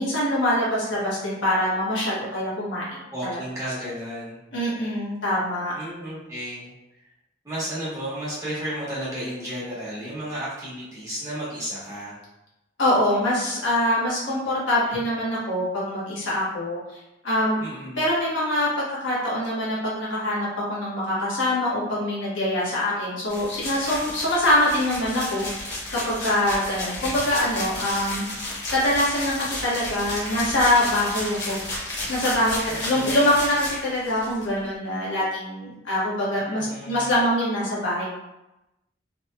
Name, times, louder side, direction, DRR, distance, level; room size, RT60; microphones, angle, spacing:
voice 1, 0.0-3.4 4.5-5.7 12.8-16.8 17.2-17.6 18.0-28.3 28.7-31.6 32.1-38.1, left 1 dB, 80° left, -7 dB, 1.3 m, -24 dB
voice 2, 3.1-4.4 5.7-6.7 7.4-12.2 17.6-18.1 32.7-33.2 36.6-37.0, equal, 15° right, -9 dB, 1.1 m, -33 dB
sound 1, 23.3-34.5, left 1 dB, 60° left, 1.1 m, -33 dB
3.3 x 2.8 x 2.2 m, 0.94 s
head